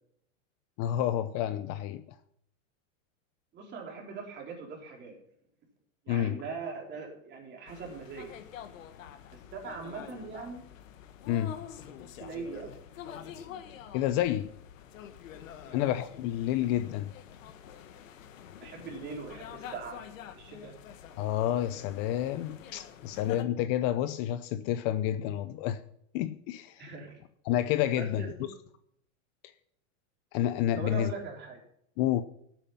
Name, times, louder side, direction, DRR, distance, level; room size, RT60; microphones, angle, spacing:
voice 1, 0.8-2.0 6.1-6.4 11.3-11.6 13.9-14.5 15.7-17.1 21.2-25.8 26.1-26.8 27.4-28.3 30.3-31.1 32.0-32.2, left 12 dB, 40° left, 0.7 m, -29 dB
voice 2, 3.5-5.2 6.0-8.3 9.3-10.7 12.2-12.8 15.7-15.8 18.6-20.0 20.3-20.7 26.8-27.2 28.0-28.3 30.8-31.6, right 5 dB, 25° right, 4.0 m, -41 dB
sound 1, 7.7-23.4, left 9 dB, 85° left, 1.8 m, -47 dB
15.5 x 9.0 x 5.7 m
supercardioid pair, 150°, 38 cm